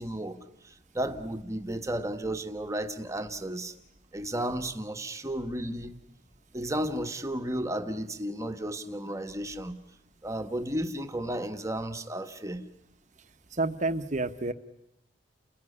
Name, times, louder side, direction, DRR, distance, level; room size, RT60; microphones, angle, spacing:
voice 1, 0.0-3.7 4.1-6.0 6.5-9.7 10.2-12.7, right 1 dB, 15° right, 7 dB, 1.4 m, -33 dB
voice 2, 13.5-14.5, right 2 dB, 40° right, 9 dB, 1.1 m, -29 dB
30.0 x 17.5 x 9.9 m, 0.82 s
head